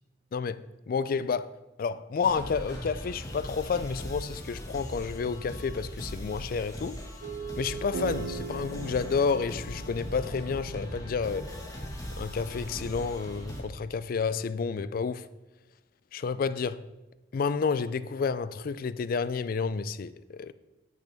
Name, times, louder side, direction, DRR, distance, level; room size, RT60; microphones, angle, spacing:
voice 1, 0.3-7.0 7.6-11.5 12.2-15.3 16.1-16.8 17.3-20.5, left 5 dB, 55° left, 0.4 m, -30 dB
sound 1, 2.2-13.6, equal, 20° left, 1.7 m, -39 dB
Clapping, 2.7-5.0, left 2 dB, 70° left, 2.6 m, -58 dB
sound 2, 7.2-11.7, right 5 dB, 75° right, 0.6 m, -40 dB
9.1 x 7.6 x 3.5 m
head